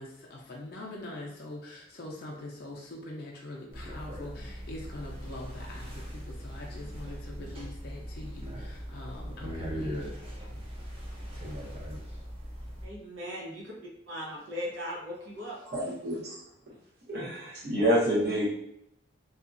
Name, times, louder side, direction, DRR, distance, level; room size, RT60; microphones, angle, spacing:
voice 1, 0.0-10.1, left 1 dB, 50° left, -2 dB, 0.4 m, -43 dB
sound 1, 3.7-12.9, equal, 30° right, 0.6 m, -40 dB
voice 2, 12.8-13.7 14.1-15.6, equal, 90° right, -4 dB, 0.8 m, -38 dB
voice 3, 15.6-16.4 17.1-18.4, equal, 55° right, -6 dB, 1.0 m, -28 dB
2.7 x 2.4 x 2.5 m, 0.79 s
head